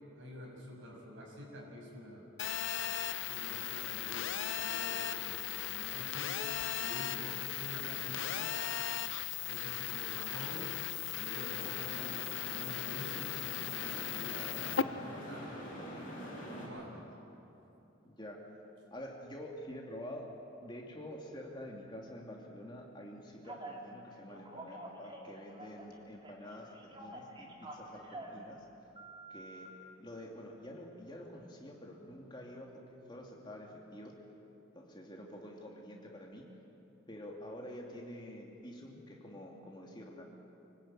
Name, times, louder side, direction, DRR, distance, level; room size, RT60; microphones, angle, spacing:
voice 1, 0.2-2.2 2.9-6.4 6.8-8.5 9.5-10.7 11.1-17.0, equal, 65° right, -2 dB, 6.4 m, -48 dB
Telephone, 2.4-14.8, left 10 dB, 65° left, 0.6 m, -37 dB
sound 1, 11.5-16.7, equal, 40° left, 7.5 m, -46 dB
voice 2, 18.0-18.4 18.9-20.3 20.6-28.6 29.3-32.7 33.1-34.1 34.7-36.4 37.1-40.2, equal, 20° left, 0 dB, 2.8 m, -48 dB
Telephone 2, 23.4-23.8 24.3-25.9 26.2-28.4 28.9-29.7, right 2 dB, 25° right, 2.9 m, -48 dB
25.0 x 18.5 x 9.0 m, 3.0 s
head